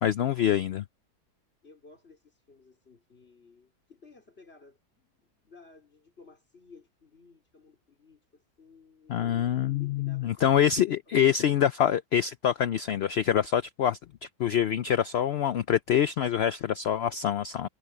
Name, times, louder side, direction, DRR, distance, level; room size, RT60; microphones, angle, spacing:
voice 1, 0.0-0.8 9.1-17.7, left 9 dB, 75° left, 0.5 m, -25 dB
voice 2, 1.6-10.6, left 4 dB, 40° left, 4.6 m, -56 dB
omnidirectional pair, 1.6 m